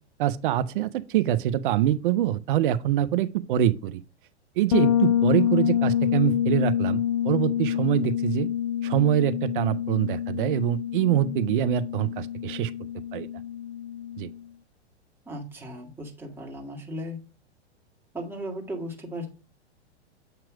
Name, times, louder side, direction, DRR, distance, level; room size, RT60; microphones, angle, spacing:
voice 1, 0.2-4.0 4.6-8.5 8.8-12.7 13.1-13.3 14.2-14.3, right 12 dB, 50° right, 0.6 m, -24 dB
Bass guitar, 4.7-14.4, left 10 dB, 40° left, 0.6 m, -27 dB
voice 2, 15.2-17.2 18.1-19.3, equal, 5° right, 1.7 m, -36 dB
7.9 x 3.0 x 4.8 m
figure-of-eight pair, 105°, 34 cm